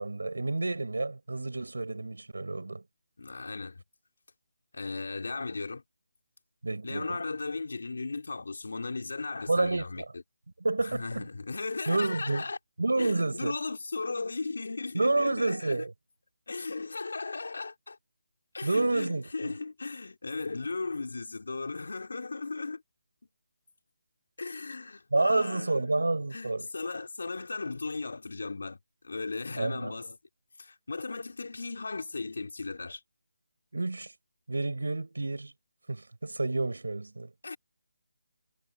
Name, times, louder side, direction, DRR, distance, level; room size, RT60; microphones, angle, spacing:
voice 1, 0.0-2.8 6.6-7.2 9.5-10.1 10.6-11.3 11.9-12.5 12.8-13.5 14.9-15.9 18.6-19.5 25.1-26.7 29.6-29.9 33.7-34.1 34.5-35.5 35.9-37.3, right 2 dB, 80° right, 6.9 m, -29 dB
voice 2, 3.2-3.8 4.7-5.8 6.8-10.2 10.8-12.6 13.0-15.8 16.5-18.0 18.5-22.8 24.4-26.0 26.3-28.8 29.0-30.2 30.6-33.0 37.4-37.6, left 3 dB, 70° left, 3.1 m, -36 dB
figure-of-eight pair, 160°, 0 cm